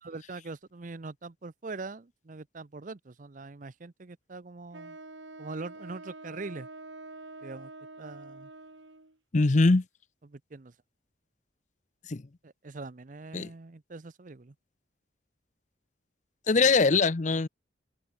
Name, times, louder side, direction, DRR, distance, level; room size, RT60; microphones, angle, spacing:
voice 1, 0.0-5.0 5.4-6.7 7.4-7.7 8.0-8.5 10.2-10.7 12.4-14.5, right 3 dB, 40° right, 0.6 m, -42 dB
Wind instrument woodwind instrument, 4.7-9.2, right 2 dB, 80° right, 3.8 m, -46 dB
voice 2, 9.3-9.8 12.1-12.2 13.3-13.5 16.5-17.5, left 3 dB, 40° left, 0.6 m, -22 dB
head